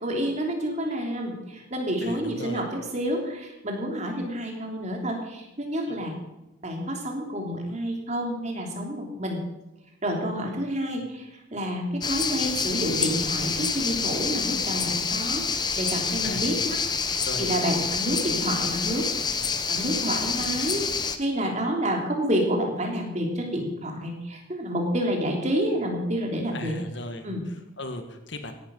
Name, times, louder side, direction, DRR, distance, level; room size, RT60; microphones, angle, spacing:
voice 1, 0.0-6.1 6.6-9.4 10.0-16.8 17.4-19.0 19.7-20.9 21.2-26.7 27.2-27.4, equal, 35° right, 1 dB, 3.1 m, -29 dB
voice 2, 2.0-2.6 5.9-6.0 10.9-11.1 16.2-16.5 17.2-17.5 21.4-21.6 26.5-28.6, left 1 dB, 60° left, 6 dB, 1.8 m, -38 dB
sound 1, 12.0-21.2, left 5 dB, 20° left, 0.9 m, -27 dB
16.5 x 12.0 x 5.4 m, 0.98 s
head